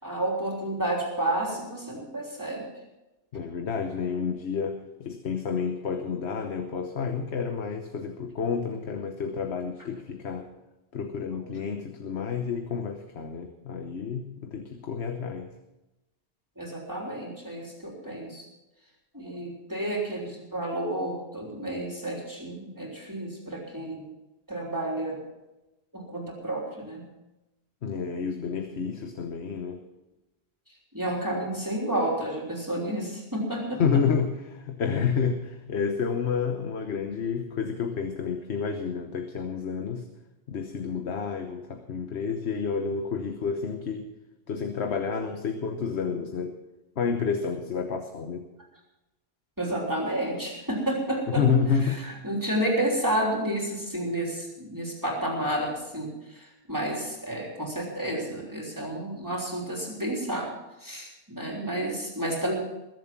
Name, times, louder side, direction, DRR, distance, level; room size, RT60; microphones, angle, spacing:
voice 1, 0.0-2.6 11.3-11.4 16.6-18.4 19.1-24.1 24.5-25.2 25.9-27.0 30.9-33.8 49.6-51.4 51.7-60.5 60.8-62.6, right 1 dB, 15° right, -2 dB, 3.3 m, -31 dB
voice 2, 3.3-10.5 10.9-15.5 27.8-29.8 33.8-40.1 40.5-44.1 44.5-46.6 47.0-48.4 51.3-52.0, left 6 dB, 75° left, 6 dB, 1.3 m, -29 dB
21.5 x 7.6 x 6.0 m, 1.0 s
omnidirectional pair, 1.1 m